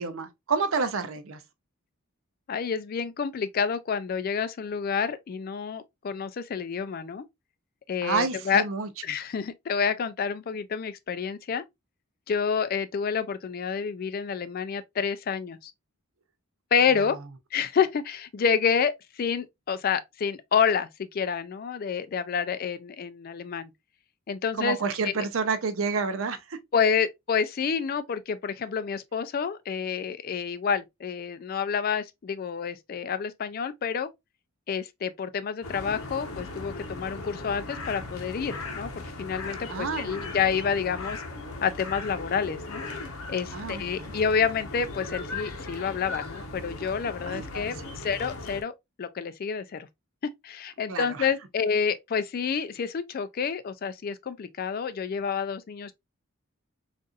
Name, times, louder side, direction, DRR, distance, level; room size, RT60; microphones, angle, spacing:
voice 1, 0.0-1.4 8.0-8.9 16.9-17.1 24.6-26.6 39.7-40.2 43.5-44.2 47.3-48.0 50.9-51.3, right 4 dB, 65° right, 0.6 m, -29 dB
voice 2, 2.5-7.2 7.9-8.6 9.0-11.6 12.3-15.7 16.7-17.2 17.5-23.7 24.3-24.8 25.0-25.2 26.7-34.1 34.7-41.2 41.6-42.8 43.3-48.7 49.0-49.9 50.2-55.9, left 6 dB, 40° left, 0.3 m, -28 dB
sound 1, 35.6-48.6, left 2 dB, 75° left, 0.8 m, -38 dB
3.9 x 2.5 x 2.4 m
head